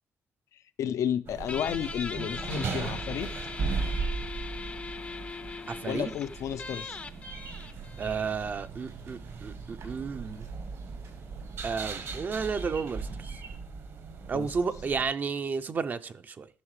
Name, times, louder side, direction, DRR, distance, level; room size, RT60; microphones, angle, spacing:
voice 1, 0.8-3.3 5.9-7.0 14.3-14.5, left 9 dB, 80° left, 0.5 m, -32 dB
sound 1, 1.3-15.1, right 4 dB, 55° right, 1.1 m, -38 dB
Guitar, 1.5-8.7, left 4 dB, 25° left, 0.5 m, -40 dB
Bird vocalization bird call bird song, 3.4-13.5, right 4 dB, 85° right, 4.6 m, -51 dB
voice 2, 5.7-6.1 8.0-10.5 11.6-13.1 14.3-16.5, right 5 dB, 35° right, 0.5 m, -32 dB
11.0 x 6.5 x 3.2 m
wide cardioid pair, 160°, 5 cm